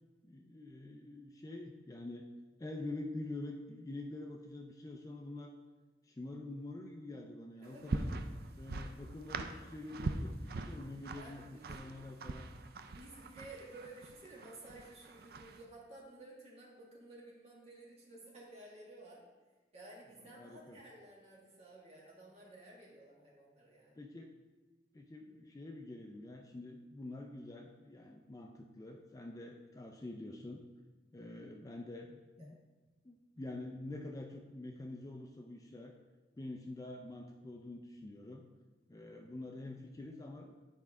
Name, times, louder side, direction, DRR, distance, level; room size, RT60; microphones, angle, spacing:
voice 1, 0.2-2.3 2.6-5.6 6.0-8.1 8.6-12.5 20.2-20.8 23.9-24.3 24.9-30.6 31.1-32.6 33.0-35.9 36.4-38.5 38.9-40.6, left 2 dB, 20° left, 3 dB, 0.3 m, -46 dB
voice 2, 7.5-7.9 11.2-12.0 12.9-19.2 19.7-24.0 32.1-32.5, right 2 dB, 35° right, -4 dB, 1.6 m, -54 dB
sound 1, 7.6-15.6, right 3 dB, 55° right, 0.4 m, -42 dB
9.7 x 4.5 x 3.5 m, 1.3 s
head